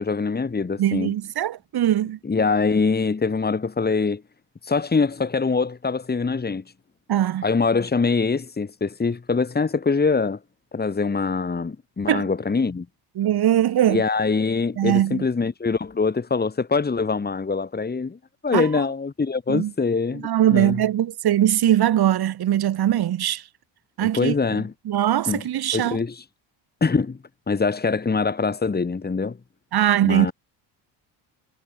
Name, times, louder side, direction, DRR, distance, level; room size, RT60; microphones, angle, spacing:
voice 1, 0.0-1.1 2.2-4.2 4.6-6.6 7.4-10.4 10.7-12.9 13.9-20.8 24.0-24.7 25.3-25.4 25.7-26.2 26.8-27.2 27.5-29.4 30.0-30.3, left 4 dB, 20° left, 5.5 m, -23 dB
voice 2, 0.8-2.2 7.1-7.4 12.1-12.2 13.2-14.0 14.8-15.3 18.5-18.7 19.5-19.7 20.1-23.4 24.0-24.3 24.9-26.0 29.7-30.3, right 12 dB, 55° right, 5.8 m, -21 dB
cardioid pair, 120°, 45 cm